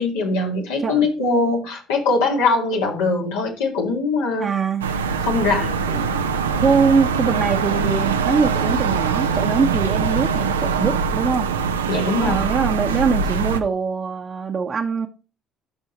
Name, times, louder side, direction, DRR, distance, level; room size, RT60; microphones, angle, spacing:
voice 1, 0.0-4.5 5.2-5.8 11.9-12.5, left 3 dB, 75° left, 2.0 m, -21 dB
voice 2, 4.4-4.9 5.9-6.3 6.6-11.5 12.1-15.1, right 5 dB, 40° right, 0.9 m, -22 dB
sound 1, 4.8-13.6, right 5 dB, 85° right, 0.6 m, -22 dB
12.5 x 5.5 x 3.0 m
hypercardioid pair, 55°, 0 cm